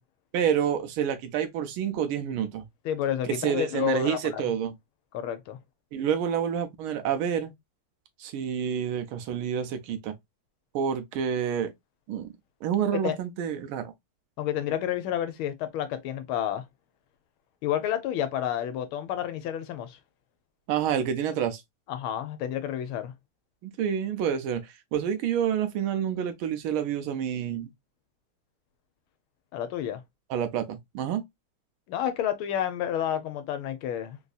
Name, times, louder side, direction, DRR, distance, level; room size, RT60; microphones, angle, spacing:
voice 1, 0.3-2.6 3.3-4.7 5.9-7.5 8.2-10.1 10.7-11.7 12.1-12.3 12.6-13.9 20.7-21.6 23.6-27.7 30.3-31.2, right 8 dB, 75° right, 1.5 m, -28 dB
voice 2, 2.8-4.4 5.1-5.6 12.9-13.2 14.4-16.6 17.6-20.0 21.9-23.1 29.5-30.0 31.9-34.2, left 10 dB, 75° left, 1.4 m, -30 dB
3.9 x 2.6 x 2.3 m
omnidirectional pair, 2.4 m